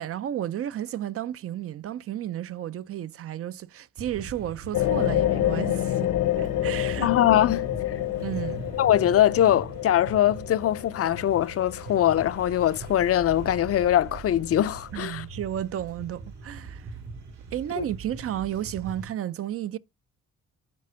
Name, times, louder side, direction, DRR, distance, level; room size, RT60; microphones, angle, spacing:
voice 1, 0.0-6.1 6.4-7.1 8.2-8.6 14.9-16.9 17.5-19.8, right 11 dB, 50° right, 0.4 m, -32 dB
sound 1, 4.0-19.1, right 3 dB, 85° right, 4.8 m, -42 dB
sound 2, 4.7-13.5 14.0-14.1, left 13 dB, 80° left, 1.0 m, -28 dB
voice 2, 7.0-7.7 8.8-15.2 17.8-17.9, left 11 dB, 50° left, 0.5 m, -22 dB
9.8 x 3.4 x 5.6 m
cardioid pair, 90°, 30 cm